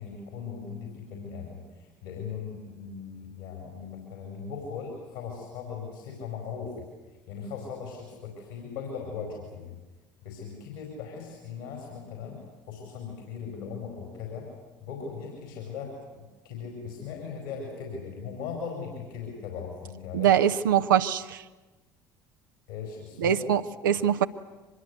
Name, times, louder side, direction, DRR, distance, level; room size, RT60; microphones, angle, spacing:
voice 1, 0.0-6.9 7.3-9.8 10.2-14.5 14.8-20.3 22.7-23.4, left 6 dB, 75° left, 1 dB, 4.8 m, -39 dB
voice 2, 20.1-21.4 23.2-24.3, right 9 dB, 75° right, 8 dB, 0.7 m, -23 dB
24.0 x 21.5 x 8.2 m, 1.2 s
figure-of-eight pair, 60°, 11 cm